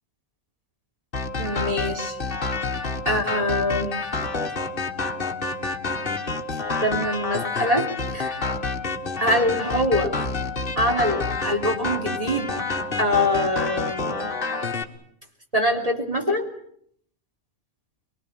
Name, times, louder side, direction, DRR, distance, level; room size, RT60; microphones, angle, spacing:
sound 1, 1.1-14.8, left 3 dB, 50° left, 2.0 m, -28 dB
voice 1, 1.4-2.2 3.1-4.0 6.8-8.3 9.2-10.1 10.8-12.6 13.0-14.3 15.5-16.4, left 1 dB, 30° right, 1 dB, 3.6 m, -24 dB
25.0 x 22.5 x 8.8 m, 0.69 s
omnidirectional pair, 1.2 m